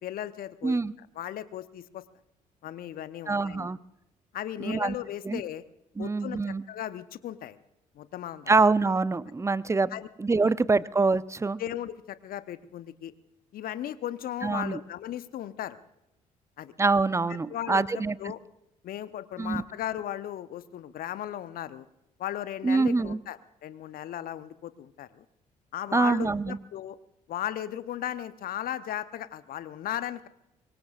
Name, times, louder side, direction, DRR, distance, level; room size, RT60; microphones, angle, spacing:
voice 1, 0.0-2.0 2.6-3.7 4.3-5.6 6.0-7.6 7.9-8.5 9.9-10.1 10.4-10.5 11.6-13.1 13.5-15.8 16.6-16.7 17.3-18.4 18.8-21.9 22.2-25.2 25.7-27.0 27.3-30.3, left 11 dB, 50° left, 14 dB, 0.9 m, -36 dB
voice 2, 0.6-0.9 3.3-3.8 4.6-4.9 5.2-5.4 6.0-6.6 8.5-9.9 10.2-11.6 14.4-14.8 16.8-18.2 19.4-19.6 22.6-23.2 25.9-26.6, right 3 dB, 15° right, 18 dB, 0.6 m, -25 dB
24.5 x 22.0 x 2.5 m, 0.86 s
figure-of-eight pair, 45°, 19 cm